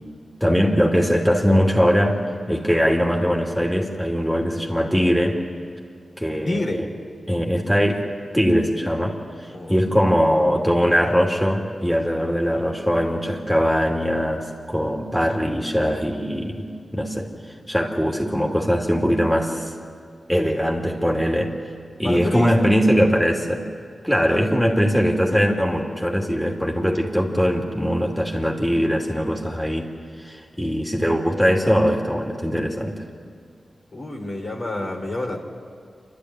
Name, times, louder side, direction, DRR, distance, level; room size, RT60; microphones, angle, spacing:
voice 1, 0.4-5.4 6.2-6.9 7.3-8.0 8.3-17.3 17.7-19.7 20.3-21.5 22.0-23.7 24.0-29.9 30.2-33.0, equal, 5° left, -1 dB, 2.7 m, -21 dB
voice 2, 6.5-6.8 9.5-9.8 22.0-22.7 24.2-24.5 33.9-35.4, left 2 dB, 55° left, 1 dB, 3.9 m, -28 dB
27.0 x 13.0 x 9.7 m, 2.2 s
cardioid pair, 50°, 0 cm